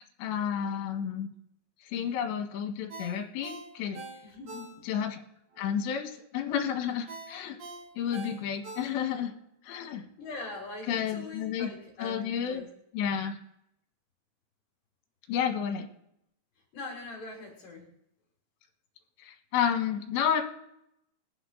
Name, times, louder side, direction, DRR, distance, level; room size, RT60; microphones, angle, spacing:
voice 1, 0.2-1.3 1.9-4.0 4.9-5.2 5.6-7.6 8.0-9.3 9.6-10.0 10.9-11.7 12.0-12.6 12.9-13.4 15.3-15.9 19.2-20.4, left 8 dB, 75° left, 5 dB, 3.5 m, -31 dB
Ringtone, 2.9-5.2 5.5-5.6 7.1-9.3 9.7-9.8, right 3 dB, 40° right, 3.2 m, -44 dB
voice 2, 4.2-4.9 10.2-12.7 16.7-17.9, left 3 dB, 55° left, -2 dB, 3.6 m, -42 dB
23.0 x 8.8 x 3.9 m, 0.77 s
omnidirectional pair, 5.3 m